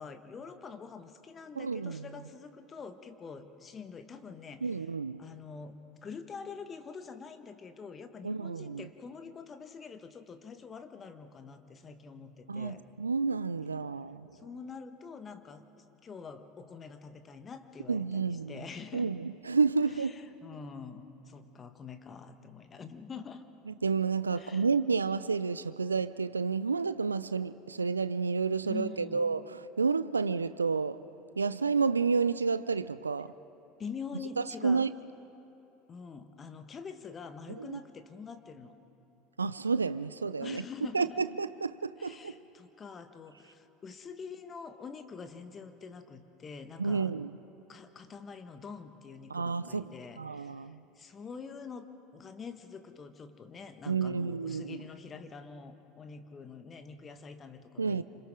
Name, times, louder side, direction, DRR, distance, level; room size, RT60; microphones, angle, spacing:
voice 1, 0.0-4.8 5.2-12.8 14.3-15.6 16.0-19.1 19.9-23.4 24.3-24.7 28.6-29.2 33.8-34.9 35.9-38.7 40.4-41.2 42.0-47.1 47.7-51.9 52.1-58.0, left 5 dB, 30° left, 1.4 m, -45 dB
voice 2, 1.6-2.1 4.6-5.2 8.2-8.9 12.5-14.3 17.9-18.6 18.9-20.1 23.8-31.0 31.4-33.3 34.4-34.9 37.6-37.8 39.4-40.6 40.9-42.4 46.8-47.4 49.3-50.8 53.9-54.8 57.8-58.0, right 5 dB, 90° right, 0.4 m, -30 dB
28.5 x 27.0 x 3.7 m
figure-of-eight pair, 75°, 0 cm